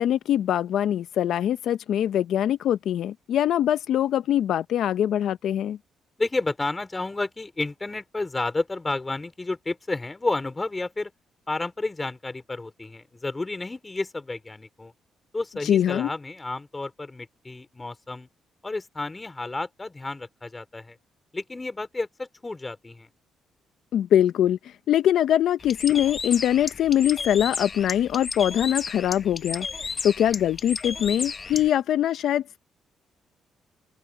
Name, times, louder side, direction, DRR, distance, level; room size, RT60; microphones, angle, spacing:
voice 1, 0.0-5.8 15.6-16.1 23.9-32.6, left 11 dB, 75° left, 0.6 m, -23 dB
voice 2, 6.2-11.1 11.5-14.9 15.3-18.3 18.6-21.0 21.3-23.1, left 2 dB, 20° left, 3.9 m, -31 dB
Bird, 25.6-31.7, left 5 dB, 35° left, 1.0 m, -33 dB
open air
cardioid pair, 90°, 0 cm